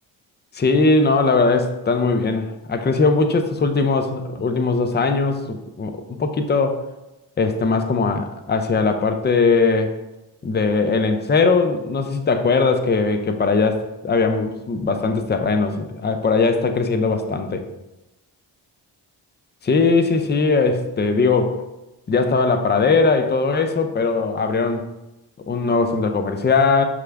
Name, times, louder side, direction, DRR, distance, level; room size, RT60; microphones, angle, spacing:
voice 1, 0.5-6.8 7.4-9.9 10.4-17.6 19.6-21.6 22.1-24.9 25.5-26.8, left 4 dB, 20° left, 7 dB, 0.5 m, -20 dB
6.0 x 2.4 x 3.4 m, 0.97 s
supercardioid pair, 50°, 48 cm